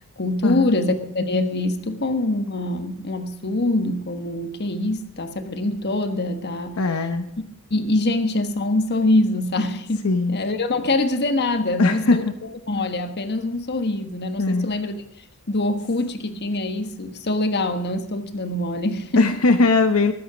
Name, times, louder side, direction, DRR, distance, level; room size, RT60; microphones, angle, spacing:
voice 1, 0.2-6.8 7.7-12.3 12.7-14.9 15.5-19.3, left 2 dB, 50° left, 8 dB, 1.4 m, -24 dB
voice 2, 6.8-7.2 10.0-10.4 11.8-12.3 14.4-14.7 19.2-20.1, left 3 dB, 75° left, 7 dB, 1.0 m, -19 dB
20.0 x 8.6 x 5.0 m, 0.74 s
head